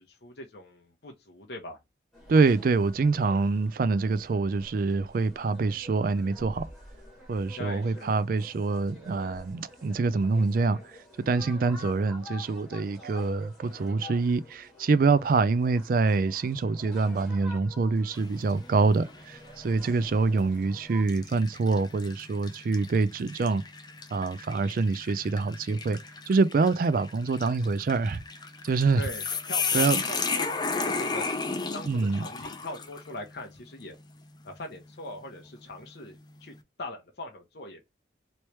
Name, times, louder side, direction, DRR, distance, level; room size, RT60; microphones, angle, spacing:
voice 1, 0.0-1.8 7.6-8.2 29.0-31.2 31.7-33.9 34.4-37.9, left 1 dB, 60° left, 0.8 m, -41 dB
sound 1, 2.1-21.1, left 1 dB, ahead, 1.6 m, -49 dB
voice 2, 2.3-6.7 7.3-10.8 11.3-23.6 24.1-26.0 26.3-28.2 28.6-29.0 29.7-30.0 31.9-32.3, right 4 dB, 50° right, 0.3 m, -25 dB
sound 2, 18.1-18.6 19.1-19.3 20.2-20.5 21.1-33.1, left 4 dB, 25° left, 0.5 m, -33 dB
3.1 x 2.9 x 3.2 m
head